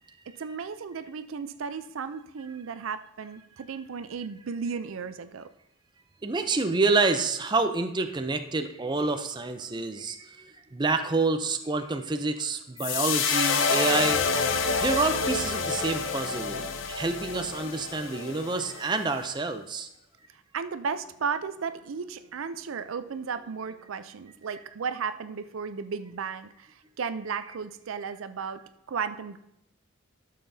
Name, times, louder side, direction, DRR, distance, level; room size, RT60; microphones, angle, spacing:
voice 1, 0.3-5.5 8.9-9.1 20.5-28.6 28.9-29.4, right 6 dB, 85° right, 11 dB, 0.5 m, -34 dB
voice 2, 6.2-14.2 14.8-19.9, right 3 dB, 20° right, 7 dB, 0.5 m, -28 dB
sound 1, 12.8-19.1, left 5 dB, 75° left, 0.7 m, -28 dB
12.5 x 6.7 x 2.7 m, 0.81 s
head